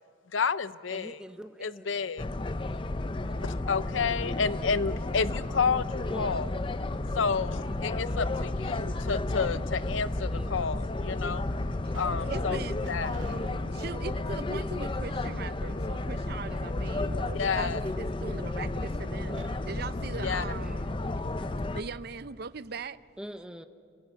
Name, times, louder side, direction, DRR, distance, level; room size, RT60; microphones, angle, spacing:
voice 1, 0.3-1.2 1.6-2.2 3.4-6.5 7.1-11.4 11.9-12.6 12.9-13.1 17.3-17.8 20.2-20.4, left 5 dB, 90° left, 0.7 m, -30 dB
voice 2, 0.9-2.3 6.1-6.5 10.3-10.7 16.5-16.6 19.0-19.6 20.4-20.8 21.3-21.6 23.2-23.6, equal, 5° right, 0.8 m, -44 dB
sound 1, 2.2-21.8, left 2 dB, 25° left, 0.6 m, -32 dB
sound 2, 4.1-5.1 5.5-6.8 8.0-8.8 9.7-9.8 10.7-10.8 11.4-15.5 15.8-15.9 19.2-22.0, right 2 dB, 90° right, 1.0 m, -51 dB
voice 3, 12.3-12.8 13.2-13.4 13.7-21.0 21.7-23.0, right 5 dB, 55° right, 0.6 m, -40 dB
27.5 x 17.0 x 8.2 m
head